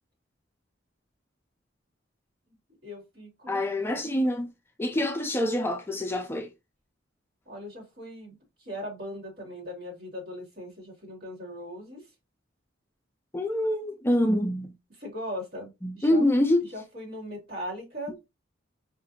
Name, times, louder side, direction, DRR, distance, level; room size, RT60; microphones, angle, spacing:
voice 1, 2.8-3.6 4.9-5.0 7.5-12.0 15.0-16.2 16.7-18.2, equal, 55° right, 2.3 m, -39 dB
voice 2, 3.5-4.5 4.8-6.5 13.3-14.7 15.8-16.6, left 1 dB, 10° left, 0.4 m, -25 dB
4.9 x 2.7 x 2.7 m
head